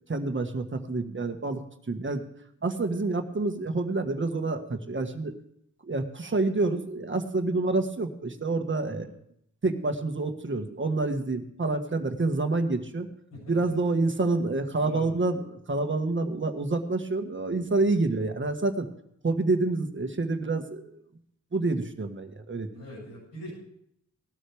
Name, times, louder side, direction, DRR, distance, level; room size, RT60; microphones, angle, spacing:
voice 1, 0.1-2.2 2.6-5.3 5.9-9.1 9.6-13.1 13.5-18.9 19.2-21.0 21.5-22.7, right 3 dB, 35° right, 6 dB, 1.6 m, -28 dB
voice 2, 8.8-9.1 13.3-13.6 14.8-15.2 22.7-23.5, equal, 90° left, -8 dB, 7.7 m, -42 dB
19.5 x 12.5 x 3.5 m, 0.72 s
cardioid pair, 80°, 31 cm